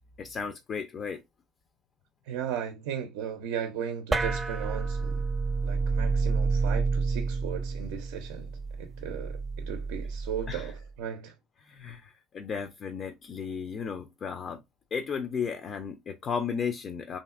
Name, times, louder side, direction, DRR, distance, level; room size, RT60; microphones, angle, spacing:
voice 1, 0.2-1.2 10.5-10.7 11.6-14.6 14.9-17.2, left 6 dB, 45° left, 0.4 m, -34 dB
voice 2, 2.3-5.2 5.6-8.5 8.8-11.3, right 8 dB, 80° right, 0.4 m, -36 dB
sound 1, 4.1-10.8, right 4 dB, 20° right, 0.4 m, -29 dB
2.8 x 2.5 x 2.3 m
supercardioid pair, 80°, 0 cm